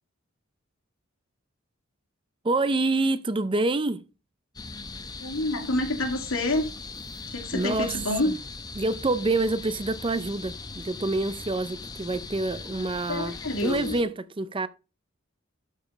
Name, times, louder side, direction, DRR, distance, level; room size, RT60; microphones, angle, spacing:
voice 1, 2.4-4.0 7.5-8.0 8.2-8.4 8.8-14.7, right 2 dB, 25° right, 0.5 m, -27 dB
sound 1, 4.5-14.0, left 3 dB, 20° left, 0.8 m, -40 dB
voice 2, 5.2-6.7 7.3-8.3 13.1-13.9, left 2 dB, 80° left, 2.4 m, -27 dB
12.0 x 5.1 x 5.0 m
head